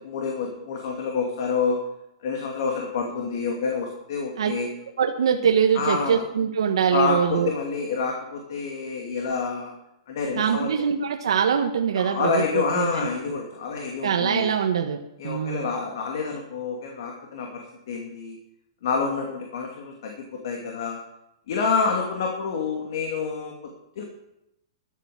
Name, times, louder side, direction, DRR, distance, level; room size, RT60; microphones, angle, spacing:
voice 1, 0.0-1.8 2.2-4.7 5.7-6.2 6.9-9.7 10.1-10.7 11.9-14.5 15.2-18.4 18.8-21.0 21.5-23.7 24.0-24.1, left 5 dB, 55° left, 1 dB, 2.6 m, -28 dB
voice 2, 5.0-7.5 10.4-13.0 14.0-15.0 15.2-15.7, right 7 dB, 85° right, 3 dB, 1.3 m, -23 dB
13.0 x 9.0 x 7.1 m, 0.85 s
hypercardioid pair, 160°, 3 cm